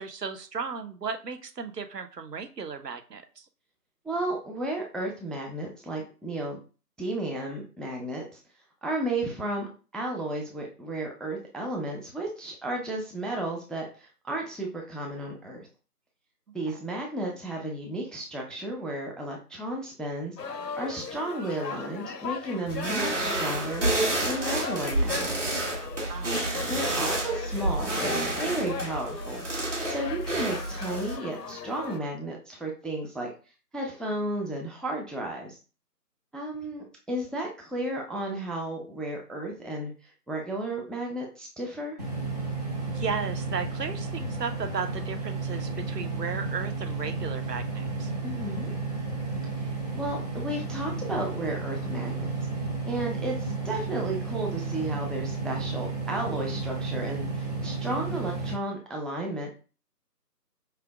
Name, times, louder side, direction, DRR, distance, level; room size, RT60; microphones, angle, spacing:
voice 1, 0.0-3.4 16.7-16.8 26.1-26.4 42.9-48.1, right 5 dB, 75° right, 8 dB, 0.7 m, -35 dB
voice 2, 4.0-6.6 7.0-8.4 8.8-15.7 16.5-25.4 26.7-29.4 29.9-33.3 33.7-35.6 36.3-42.0 48.2-48.7 49.6-52.3 52.9-59.6, right 1 dB, ahead, 0 dB, 0.4 m, -33 dB
sound 1, 20.4-32.0, left 5 dB, 75° left, 0.7 m, -38 dB
sound 2, 22.7-31.2, right 1 dB, 45° right, 1.2 m, -29 dB
sound 3, 42.0-58.6, right 3 dB, 25° right, 1.1 m, -32 dB
4.8 x 3.3 x 2.3 m, 0.35 s
figure-of-eight pair, 165°, 49 cm